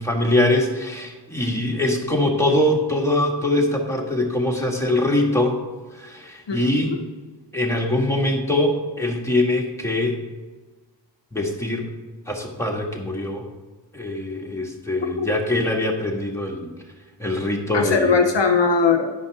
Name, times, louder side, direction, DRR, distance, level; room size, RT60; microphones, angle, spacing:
voice 1, 0.0-5.6 5.9-6.9 7.5-10.2 11.3-11.9 12.3-13.5 13.9-16.7 17.2-18.1, left 1 dB, 5° left, -1 dB, 1.5 m, -22 dB
voice 2, 6.5-7.0 15.2-15.3 17.7-19.1, left 5 dB, 70° left, 4 dB, 0.7 m, -20 dB
9.8 x 5.5 x 4.6 m, 1.3 s
wide cardioid pair, 60°, 45 cm